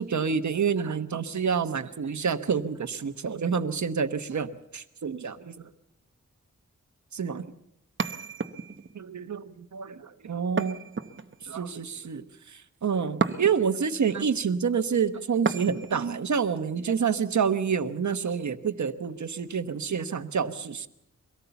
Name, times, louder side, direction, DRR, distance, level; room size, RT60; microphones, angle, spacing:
voice 1, 0.0-5.7 7.1-7.5 8.9-9.4 9.7-10.8 11.4-20.9, right 6 dB, 70° right, 9 dB, 1.1 m, -28 dB
sound 1, 8.0-8.9 10.6-11.5 13.2-13.8 15.5-16.1, right 5 dB, 40° right, 1.0 m, -31 dB
24.0 x 18.0 x 7.1 m, 0.81 s
wide cardioid pair, 135°, 30 cm